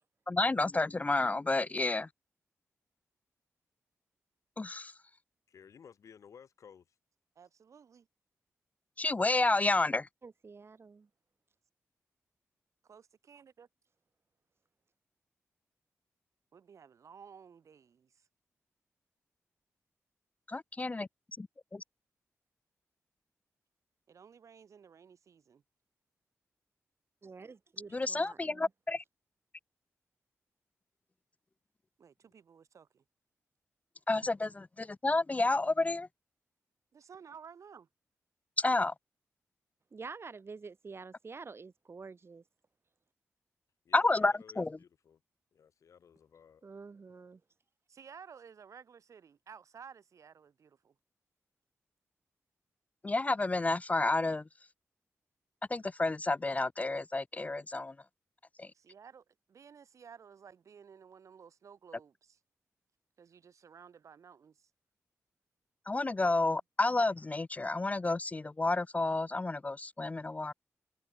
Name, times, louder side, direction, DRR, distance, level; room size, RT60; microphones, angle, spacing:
voice 1, 0.3-2.1 4.6-4.9 9.0-10.1 20.5-21.1 21.4-21.5 21.7-21.8 27.9-29.0 34.1-36.1 38.6-38.9 43.9-44.8 53.0-54.4 55.7-57.9 58.6-58.7 65.9-70.5, left 2 dB, 25° left, 0.4 m, -30 dB
voice 2, 5.5-6.8 43.9-45.2 45.5-46.6, left 7 dB, 80° left, 2.8 m, -56 dB
voice 3, 7.4-8.1 12.8-13.7 16.5-18.3 24.1-25.6 32.0-33.0 36.9-37.9 47.9-50.9 58.7-62.4 63.2-64.7, right 6 dB, 75° right, 5.8 m, -54 dB
voice 4, 10.2-11.1 27.2-28.7 39.9-42.4 46.6-47.4, right 4 dB, 50° right, 2.8 m, -48 dB
cardioid pair, 65°, 5 cm